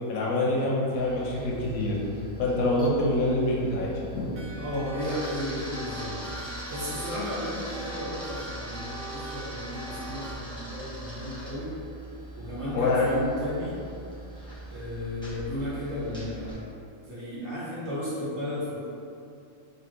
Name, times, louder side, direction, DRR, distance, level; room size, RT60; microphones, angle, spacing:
voice 1, 0.1-2.0 2.4-4.4 12.7-13.1, left 2 dB, 85° left, -4 dB, 1.2 m, -26 dB
Camera, 0.9-16.5, right 1 dB, 5° left, 0.8 m, -42 dB
sound 1, 4.3-10.3, right 2 dB, 90° right, 0.4 m, -41 dB
voice 2, 4.6-6.2 6.7-11.7 12.4-13.7 14.7-16.6 17.0-18.9, left 1 dB, 55° right, -10 dB, 1.5 m, -34 dB
4.0 x 2.8 x 3.1 m, 2.6 s
omnidirectional pair, 1.4 m